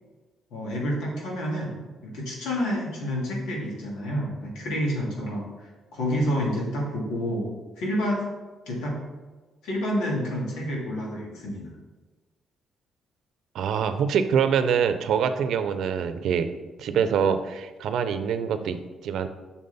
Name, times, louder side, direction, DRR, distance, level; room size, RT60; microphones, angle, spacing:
voice 1, 0.5-5.5 5.9-7.5 7.8-8.2 8.7-8.9 9.6-11.7, equal, 90° left, -2 dB, 2.5 m, -29 dB
voice 2, 13.5-16.5 16.8-19.3, right 7 dB, 75° right, 10 dB, 0.7 m, -25 dB
7.7 x 6.1 x 4.1 m, 1.3 s
cardioid pair, 90°, 0 cm